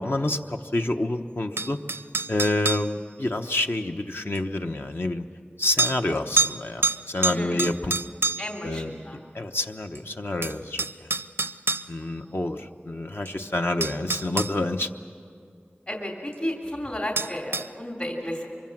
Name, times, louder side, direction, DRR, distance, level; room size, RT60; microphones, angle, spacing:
voice 1, 0.0-1.8 2.3-5.3 5.6-7.9 8.6-11.1 11.9-14.9, left 2 dB, 70° left, 4 dB, 1.0 m, -28 dB
sound 1, 1.6-2.9 4.3-4.4 5.8-6.0 6.4-6.6 6.8-8.6 9.9-10.0 10.4-11.9 13.2-13.3 13.8-14.5 17.2-17.7, right 3 dB, 80° right, 0.5 m, -26 dB
voice 2, 7.3-7.8 8.4-9.2 12.0-12.3 15.9-18.5, left 1 dB, 50° left, 0 dB, 3.1 m, -33 dB
24.0 x 23.0 x 7.4 m, 2.3 s
wide cardioid pair, 40°, 4 cm